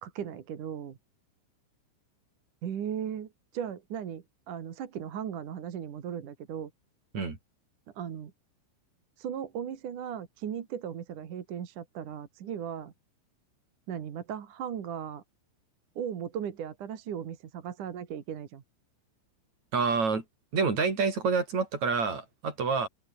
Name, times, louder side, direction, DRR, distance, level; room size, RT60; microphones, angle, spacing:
voice 1, 0.0-1.0 2.6-6.7 8.0-8.3 9.2-12.9 13.9-15.2 16.0-18.6, right 8 dB, 50° right, 2.8 m, -37 dB
voice 2, 19.7-20.2 20.5-22.9, right 5 dB, 35° right, 6.4 m, -27 dB
open air
omnidirectional pair, 6.0 m